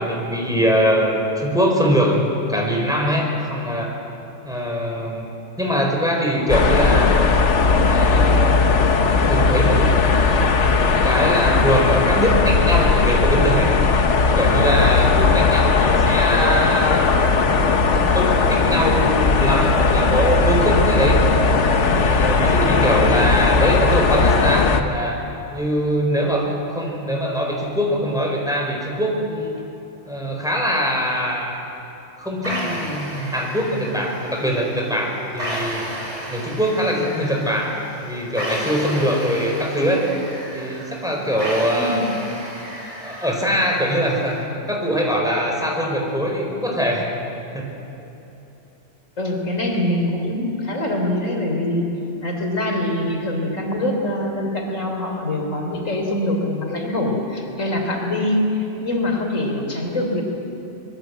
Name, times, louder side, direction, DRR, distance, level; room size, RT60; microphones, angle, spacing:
voice 1, 0.0-4.0 4.4-5.3 5.6-7.2 7.8-8.6 9.2-9.9 11.0-13.8 14.3-17.1 18.1-21.3 21.9-25.2 25.5-29.5 30.0-31.5 32.2-35.9 36.3-40.1 40.5-42.1 43.0-44.4 44.7-47.1 47.5-47.7, equal, 5° right, -1 dB, 4.4 m, -22 dB
sound 1, 6.5-24.8, left 4 dB, 65° left, 1.5 m, -17 dB
sound 2, 32.4-44.4, equal, 70° right, 5.9 m, -33 dB
voice 2, 49.2-51.8 52.2-60.2, left 1 dB, 80° left, 1 dB, 4.0 m, -24 dB
25.0 x 21.5 x 8.1 m, 3.0 s
omnidirectional pair, 1.3 m